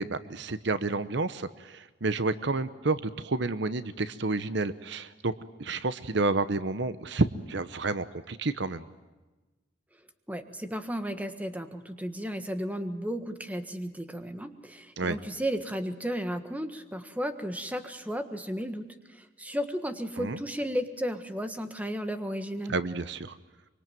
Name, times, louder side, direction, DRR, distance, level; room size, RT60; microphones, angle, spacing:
voice 1, 0.0-5.3 5.6-8.9 15.0-15.2 20.2-20.4 22.7-23.4, right 3 dB, 60° right, 13 dB, 0.9 m, -30 dB
voice 2, 10.3-22.8, equal, 10° right, 8 dB, 1.5 m, -34 dB
25.0 x 24.0 x 9.2 m, 1.1 s
head